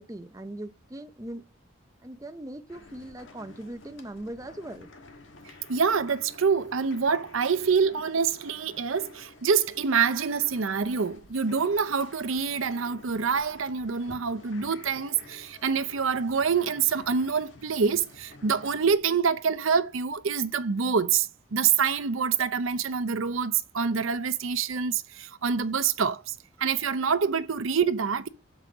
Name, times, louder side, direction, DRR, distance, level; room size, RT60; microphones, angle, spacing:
voice 1, 0.0-1.5 2.0-4.9, right 1 dB, 15° right, 0.5 m, -40 dB
sound 1, 2.7-19.0, left 2 dB, 70° left, 1.4 m, -51 dB
voice 2, 5.7-28.3, right 6 dB, 85° right, 0.6 m, -26 dB
7.5 x 4.7 x 3.9 m
head